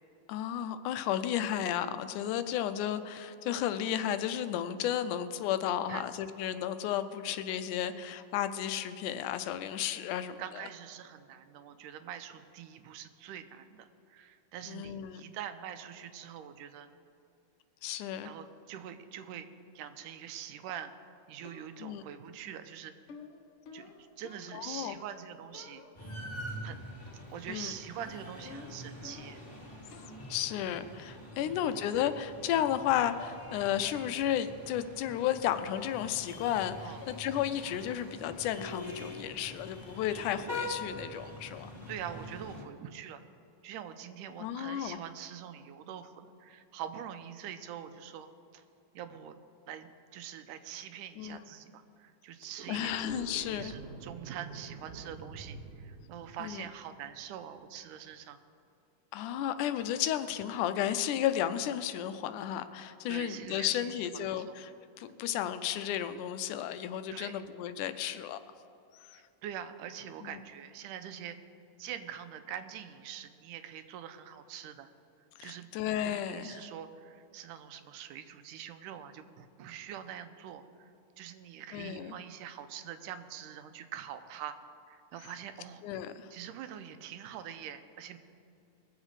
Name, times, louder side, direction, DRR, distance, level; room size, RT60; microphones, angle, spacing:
voice 1, 0.3-10.7 14.7-15.2 17.8-18.3 21.8-22.0 24.5-25.0 27.5-27.7 30.3-41.7 44.4-45.0 51.2-51.4 52.7-53.7 56.4-56.7 59.1-68.6 69.1-69.2 70.2-70.4 75.4-76.6 81.7-82.1 85.8-86.3, left 10 dB, 85° left, 11 dB, 2.1 m, -33 dB
voice 2, 10.4-16.9 18.2-19.5 19.8-20.9 21.3-22.9 23.7-25.8 26.6-26.8 27.3-29.4 31.4-31.6 36.8-37.0 41.9-43.2 43.6-48.6 48.9-49.4 49.7-53.2 53.5-58.4 63.1-64.0 64.5-64.6 67.1-67.4 69.1-71.4 71.8-74.9 75.4-75.7 76.1-80.9 81.2-84.6 84.9-85.8 86.3-88.2, right 9 dB, 90° right, 9 dB, 2.2 m, -44 dB
sound 1, 21.5-22.0 23.1-25.2 25.5-26.2 27.1-27.5 27.7-29.5 29.9-30.3 31.2-31.3 31.7-32.2 32.5-32.9 33.2-33.5 33.8-34.1 34.5-34.6 35.8-36.0 36.4-36.7 37.0-37.3 37.6-38.0 38.3-38.6, left 5 dB, 60° left, 1.5 m, -52 dB
sound 2, 25.9-42.6, left 1 dB, 15° left, 2.3 m, -45 dB
sound 3, 52.5-57.8, right 4 dB, 75° right, 1.4 m, -47 dB
21.0 x 7.5 x 4.8 m, 2.6 s
omnidirectional pair, 3.6 m